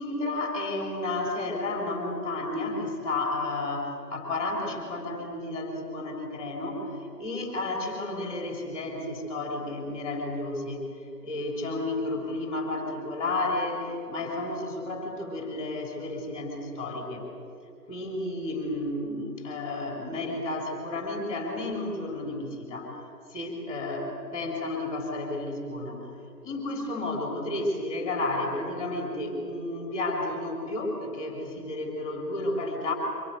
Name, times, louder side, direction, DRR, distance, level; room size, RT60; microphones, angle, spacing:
voice 1, 0.0-6.8 7.2-10.8 11.2-17.3 17.9-23.0 23.3-26.0 26.4-32.9, left 2 dB, 20° left, 1 dB, 3.6 m, -32 dB
25.0 x 17.5 x 9.3 m, 2.6 s
figure-of-eight pair, 155°, 50 cm